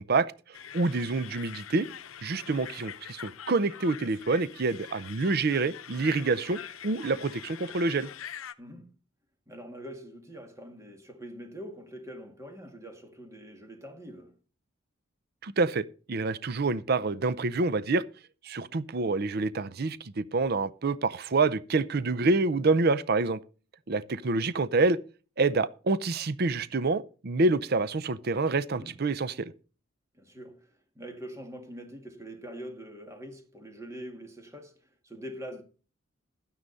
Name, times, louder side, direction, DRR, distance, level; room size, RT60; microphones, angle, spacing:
voice 1, 0.0-1.9 2.2-8.1 15.4-18.0 18.4-23.4 23.9-25.0 25.4-29.5, right 3 dB, 50° right, 0.6 m, -27 dB
sound 1, 0.5-8.5, left 9 dB, 80° left, 0.7 m, -44 dB
voice 2, 8.6-8.9 9.5-14.3 28.7-29.0 30.1-35.6, equal, 15° right, 2.0 m, -44 dB
12.5 x 9.7 x 4.1 m
head